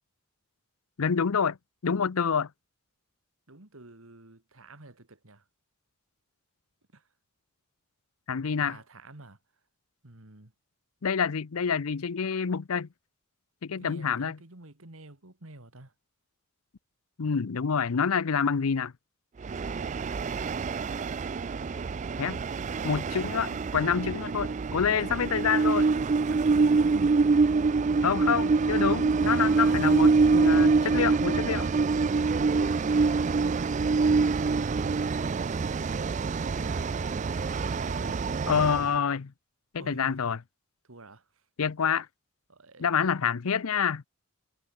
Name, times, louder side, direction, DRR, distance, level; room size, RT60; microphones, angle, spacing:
voice 1, 1.0-1.6 1.8-2.5 8.3-8.8 11.0-12.9 13.6-14.4 17.2-18.9 22.2-22.4 22.8-25.9 28.0-31.7 38.5-39.3 39.7-40.4 41.6-42.1 42.8-44.0, left 6 dB, 75° left, 0.6 m, -27 dB
voice 2, 3.5-5.4 6.9-7.0 8.6-9.4 10.0-10.5 13.8-15.9 19.7-19.9 26.3-27.2 36.4-36.9 37.2-38.2 39.8-40.2 40.9-41.2 42.5-42.9, right 2 dB, 65° right, 2.2 m, -49 dB
Train, 19.4-38.9, right 4 dB, 35° right, 0.3 m, -25 dB
head